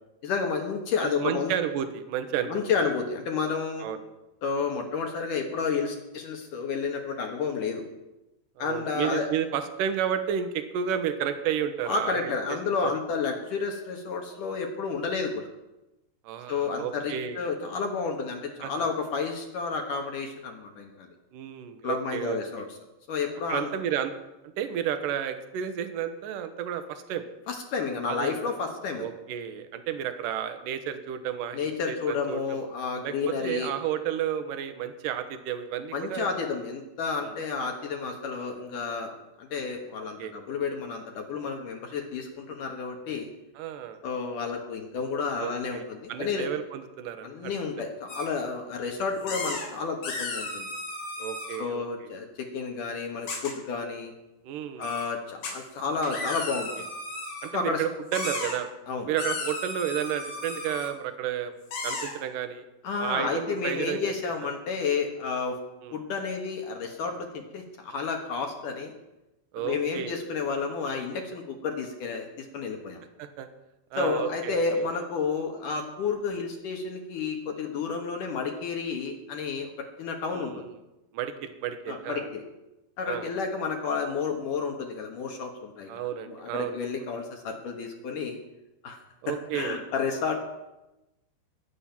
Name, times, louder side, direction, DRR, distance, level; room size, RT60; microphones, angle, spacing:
voice 1, 0.2-1.5 2.5-3.9 4.4-7.9 8.6-9.3 11.9-15.5 16.5-21.1 21.8-22.7 23.1-23.7 27.5-29.1 31.5-33.7 35.9-39.1 39.4-43.3 44.0-46.5 47.2-50.7 51.6-54.1 54.8-56.9 57.5-57.8 58.9-59.1 62.8-65.6 65.9-68.9 69.6-73.0 74.0-80.7 81.9-82.4 83.0-88.4 88.8-89.0 89.3-90.4, left 5 dB, 60° left, 3 dB, 2.5 m, -31 dB
voice 2, 1.0-2.5 3.8-4.0 8.6-13.0 16.2-17.4 18.6-18.9 21.3-22.7 23.5-24.1 24.4-27.2 28.1-28.4 29.0-32.6 33.0-36.3 37.2-37.3 40.2-40.3 43.6-44.0 45.4-45.8 46.1-47.5 51.2-52.1 54.4-54.9 57.4-58.7 59.1-61.5 61.8-62.6 63.0-64.1 64.4-64.5 65.8-66.0 69.5-70.2 73.2-73.5 73.9-74.8 80.3-80.7 81.1-82.3 83.1-83.3 85.9-87.1 89.2-89.8, right 9 dB, 70° right, 9 dB, 2.2 m, -32 dB
sound 1, 48.1-48.2 49.3-49.7 50.0-51.6 53.3-53.5 54.8-55.0 55.4-55.5 56.0-57.5 58.1-58.5 59.2-60.9 61.7-62.1, left 3 dB, 80° left, 5.9 m, -34 dB
21.0 x 8.9 x 5.9 m, 0.98 s
omnidirectional pair, 4.9 m